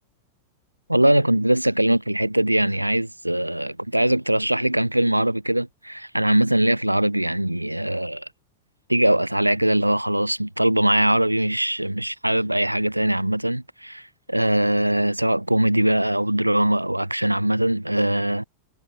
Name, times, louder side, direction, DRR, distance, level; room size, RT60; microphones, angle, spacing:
voice 1, 0.9-8.3 8.9-14.0 14.3-18.4, right 1 dB, 85° right, 0.4 m, -21 dB
figure-of-eight pair, 90°, 0 cm